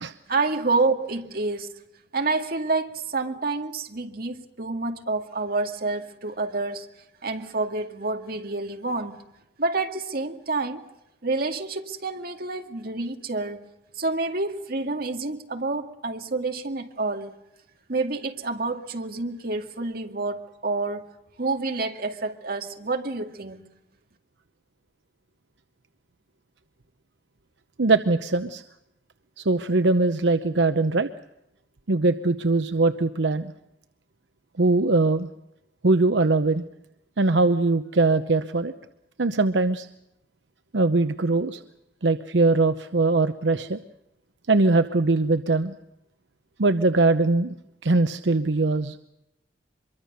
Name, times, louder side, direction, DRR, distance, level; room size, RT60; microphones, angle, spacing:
voice 1, 0.3-1.8 2.1-6.9 7.2-9.2 9.6-10.8 11.2-13.7 14.0-17.3 17.9-21.1 21.4-23.7, right 3 dB, 55° right, 2.2 m, -28 dB
voice 2, 27.8-28.6 29.4-31.1 31.9-33.5 34.6-35.3 35.8-36.6 37.2-38.7 39.2-39.9 40.7-41.6 42.0-43.8 44.5-45.7 46.6-47.5 47.8-49.0, right 3 dB, 80° right, 0.9 m, -21 dB
25.0 x 23.0 x 6.7 m
head